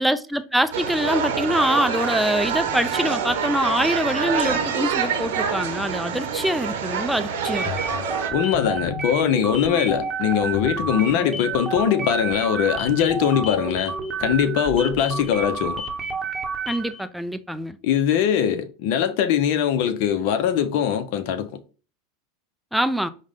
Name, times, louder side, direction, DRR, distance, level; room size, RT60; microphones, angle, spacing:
voice 1, 0.0-7.7 16.7-17.8 22.7-23.1, equal, ahead, 0.4 m, -24 dB
sound 1, 0.7-8.3, right 6 dB, 75° right, 0.8 m, -26 dB
sound 2, 7.5-17.0, right 3 dB, 20° right, 0.8 m, -29 dB
voice 2, 8.3-15.8 17.8-21.6, left 9 dB, 60° left, 0.5 m, -22 dB
4.8 x 2.1 x 3.4 m
hypercardioid pair, 105°, 0 cm